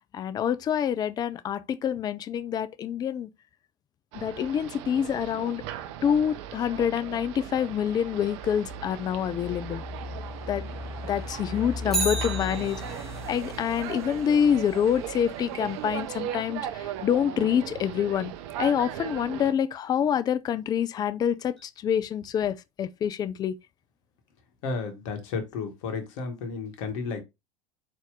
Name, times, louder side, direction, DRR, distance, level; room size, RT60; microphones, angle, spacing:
voice 1, 0.1-3.3 4.1-5.6 6.0-9.8 10.5-10.6 11.0-12.8 13.3-18.3 18.6-23.5, left 8 dB, 20° left, 0.3 m, -26 dB
sound 1, 4.1-19.5, right 10 dB, 55° right, 0.6 m, -38 dB
sound 2, 4.6-19.3, left 2 dB, 15° right, 1.1 m, -41 dB
Bicycle, 11.8-13.2 21.6-21.7, right 3 dB, ahead, 1.7 m, -31 dB
voice 2, 24.6-27.2, left 4 dB, 60° left, 1.2 m, -32 dB
4.3 x 2.9 x 3.5 m
figure-of-eight pair, 80°, 18 cm